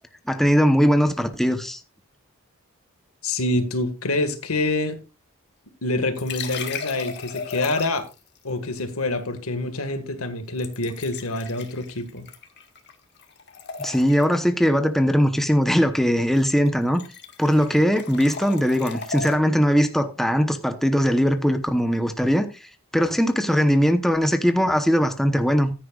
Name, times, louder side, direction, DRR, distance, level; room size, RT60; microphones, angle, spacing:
voice 1, 0.3-1.8 13.8-17.0 17.4-22.7 22.9-25.7, equal, ahead, 0.9 m, -20 dB
voice 2, 3.2-5.0 5.8-8.1 8.4-12.3, left 2 dB, 85° left, 1.8 m, -26 dB
sound 1, 6.1-8.2 10.6-12.9 13.2-14.4 16.2-16.4 16.7-19.4, left 5 dB, 55° left, 1.8 m, -36 dB
15.0 x 10.0 x 2.4 m
head